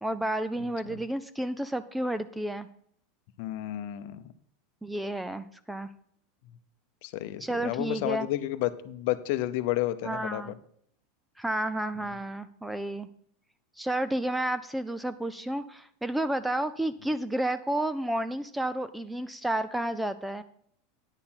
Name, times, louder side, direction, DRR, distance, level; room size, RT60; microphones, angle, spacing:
voice 1, 0.0-2.7 4.8-5.9 7.4-8.3 10.0-10.6 11.4-13.1 13.8-20.4, right 1 dB, 5° right, 14 dB, 0.4 m, -31 dB
voice 2, 3.4-4.2 7.0-10.5, left 14 dB, 55° left, 12 dB, 0.8 m, -31 dB
9.8 x 6.7 x 5.7 m, 0.66 s
supercardioid pair, 165°, 0 cm